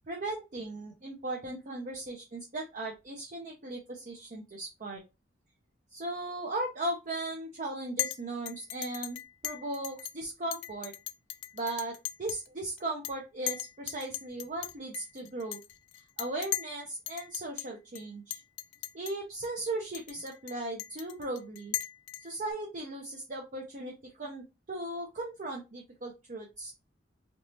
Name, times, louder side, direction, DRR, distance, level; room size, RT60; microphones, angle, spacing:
voice 1, 0.1-5.0 5.9-9.2 9.4-10.9 11.5-15.6 16.2-18.4 18.9-21.8 22.2-26.7, right 2 dB, 45° right, 0 dB, 0.7 m, -37 dB
Chink clink, 8.0-8.2 8.5-10.1 10.5-12.5 12.8-13.1 13.5-16.8 17.1-17.7 17.9-18.0 18.3-19.1 19.4-19.5 19.9-22.5, left 15 dB, 70° left, 0.3 m, -37 dB
3.5 x 3.1 x 2.7 m, 0.26 s
head